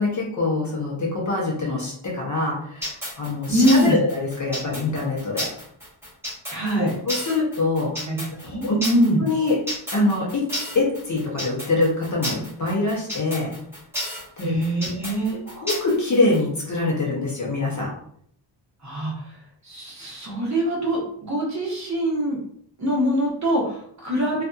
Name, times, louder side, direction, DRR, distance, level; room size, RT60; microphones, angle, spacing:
voice 1, 0.0-5.5 6.8-8.0 8.4-8.8 9.2-9.6 9.9-10.5 10.7-13.5 14.4-14.6 15.5-17.9, left 2 dB, 35° left, -3 dB, 0.7 m, -24 dB
sound 1, 2.8-16.4, equal, 5° right, 1.2 m, -31 dB
voice 2, 3.5-4.0 6.5-6.9 8.0-9.2 14.4-15.4 18.8-19.4 19.6-22.4 22.8-24.4, equal, 35° right, -4 dB, 0.9 m, -23 dB
2.6 x 2.4 x 2.3 m, 0.63 s
wide cardioid pair, 145°, 48 cm